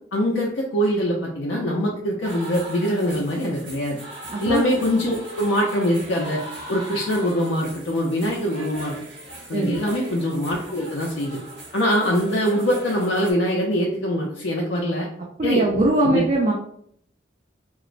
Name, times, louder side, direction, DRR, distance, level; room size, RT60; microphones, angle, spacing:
voice 1, 0.1-4.0 4.4-6.4 6.7-8.9 9.5-11.4 11.7-15.1 15.4-15.6 16.0-16.2, equal, 75° left, -2 dB, 0.4 m, -23 dB
sound 1, 2.2-13.3, right 1 dB, 75° right, 1.1 m, -39 dB
voice 2, 4.3-4.6 9.5-9.8 15.4-16.5, right 2 dB, 35° right, -1 dB, 0.3 m, -21 dB
2.9 x 2.0 x 2.4 m, 0.66 s
head